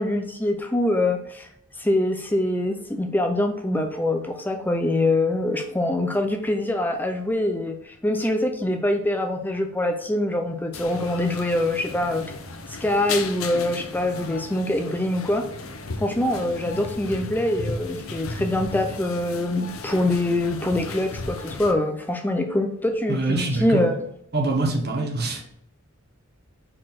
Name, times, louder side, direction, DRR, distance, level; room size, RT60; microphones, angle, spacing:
voice 1, 0.0-1.5 1.8-12.3 12.7-15.5 16.0-24.0, left 1 dB, 10° left, 5 dB, 0.5 m, -24 dB
sound 1, 10.7-21.7, left 3 dB, 90° left, 0.8 m, -35 dB
voice 2, 23.1-23.8 24.3-25.4, right 2 dB, 50° right, 1 dB, 1.4 m, -24 dB
4.6 x 4.4 x 5.9 m, 0.73 s
head